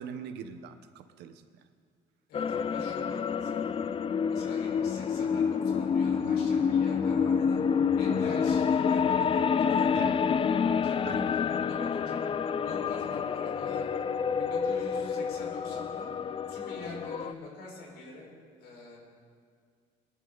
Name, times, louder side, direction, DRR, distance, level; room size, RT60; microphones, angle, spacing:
voice 1, 0.0-1.4 8.1-8.3 9.9-10.1 11.0-11.3, right 8 dB, 85° right, 10 dB, 1.0 m, -42 dB
voice 2, 2.3-3.6 4.3-7.6 8.0-12.2 12.6-13.9 14.4-16.1 16.5-18.3 18.6-19.0, left 2 dB, 75° left, -2 dB, 4.8 m, -45 dB
sound 1, 2.3-17.3, left 6 dB, 30° left, 0.5 m, -28 dB
22.0 x 11.5 x 3.9 m, 2.1 s
cardioid pair, 110°, 17 cm